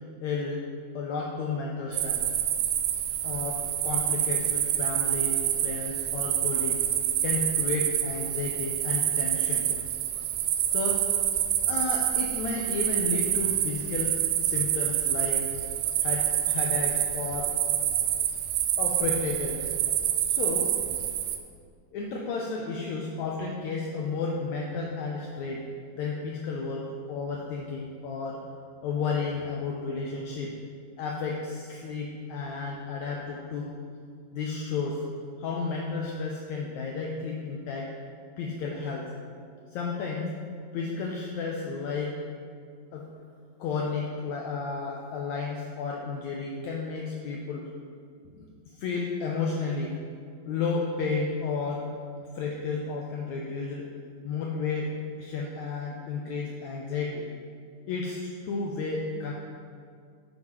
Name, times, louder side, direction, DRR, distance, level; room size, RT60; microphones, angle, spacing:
voice 1, 0.2-0.6 0.9-2.3 3.2-6.8 7.2-9.7 10.7-11.0 11.7-15.4 16.0-17.5 18.8-19.7 20.2-20.7 21.9-25.6 25.9-28.4 28.8-30.5 31.0-33.7 34.3-35.0 35.4-37.9 38.4-39.1 39.7-40.3 40.7-42.2 42.9-43.1 43.6-47.7 48.3-48.5 48.7-50.0 50.4-51.9 52.3-53.9 54.2-57.3 57.9-59.3, left 4 dB, 85° left, -1 dB, 1.6 m, -32 dB
sound 1, 1.9-21.4, right 10 dB, 80° right, 1.7 m, -27 dB
9.2 x 7.6 x 3.1 m, 2.2 s
omnidirectional pair, 3.9 m